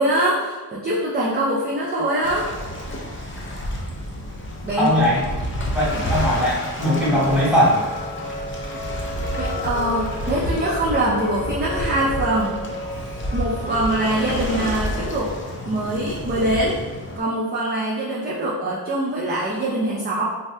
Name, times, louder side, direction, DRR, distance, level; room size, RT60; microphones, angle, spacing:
voice 1, 0.0-2.5 4.6-5.0 9.4-12.6 13.3-15.3 15.6-16.8 17.2-20.2, right 1 dB, 25° right, -6 dB, 0.4 m, -23 dB
Waves surf, 2.2-17.2, equal, 30° left, 0.4 m, -30 dB
voice 2, 4.8-5.2 5.7-7.8, left 1 dB, ahead, -8 dB, 1.1 m, -19 dB
sound 1, 6.8-14.8, left 1 dB, 85° left, 0.7 m, -33 dB
2.6 x 2.2 x 3.2 m, 1.3 s
wide cardioid pair, 115°, 39 cm